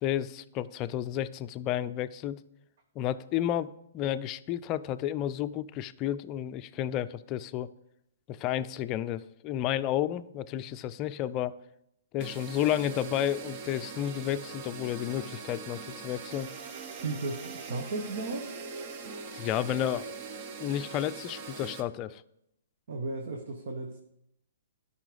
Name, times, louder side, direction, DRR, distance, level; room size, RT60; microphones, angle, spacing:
voice 1, 0.0-2.4 3.0-7.7 8.3-11.6 12.1-16.5 19.3-20.1 20.6-22.2, left 11 dB, 30° left, 11 dB, 0.4 m, -31 dB
sound 1, 12.2-21.8, right 5 dB, 40° right, 1.0 m, -42 dB
voice 2, 17.0-18.6 22.9-24.0, right 3 dB, 60° right, 4 dB, 1.2 m, -35 dB
12.0 x 5.6 x 5.0 m, 0.79 s
hypercardioid pair, 135°, 0 cm